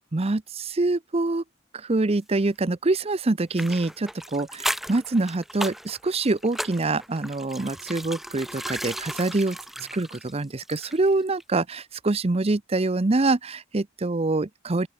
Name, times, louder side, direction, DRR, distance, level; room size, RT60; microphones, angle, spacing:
voice 1, 0.1-1.4 1.9-9.6 9.9-14.9, right 2 dB, 30° right, 0.6 m, -25 dB
sound 1, 3.5-11.1 11.4-11.5, equal, ahead, 1.8 m, -35 dB
open air
head